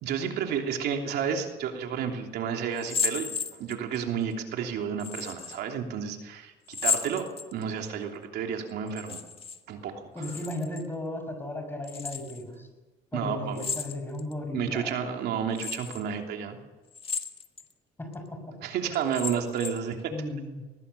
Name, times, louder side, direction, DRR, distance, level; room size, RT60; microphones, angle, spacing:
voice 1, 0.0-9.2 9.7-10.2 13.1-13.7 14.5-16.6 18.6-20.1, right 7 dB, 75° right, 3 dB, 3.1 m, -31 dB
sound 1, 2.8-4.0 5.0-5.6 6.7-7.8 8.9-9.6 9.9-10.9 11.8-12.4 13.6-14.3 14.9-15.0 15.6-16.0 16.9-17.7 18.1-18.2 18.9-19.9, left 5 dB, 35° left, 1.8 m, -33 dB
voice 2, 10.1-12.7 13.1-15.2 18.0-18.6 20.1-20.6, left 1 dB, 10° left, 6 dB, 6.3 m, -36 dB
21.0 x 20.0 x 6.9 m, 1.2 s
cardioid pair, 110°, 17 cm